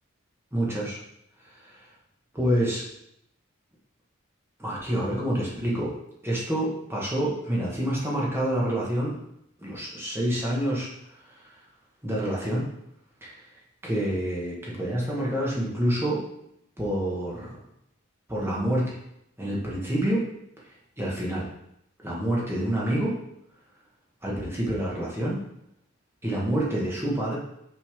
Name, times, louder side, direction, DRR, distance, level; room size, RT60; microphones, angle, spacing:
voice 1, 0.5-1.0 1.5-1.9 2.3-2.8 4.6-5.9 6.2-9.2 9.6-10.9 11.2-11.6 12.0-12.7 13.2-13.5 13.8-16.2 16.8-17.5 18.3-19.0 19.4-20.3 21.0-21.5 22.0-23.1 24.2-25.4 26.2-27.4, right 1 dB, 10° right, -5 dB, 1.4 m, -27 dB
5.9 x 5.5 x 3.5 m, 0.79 s
head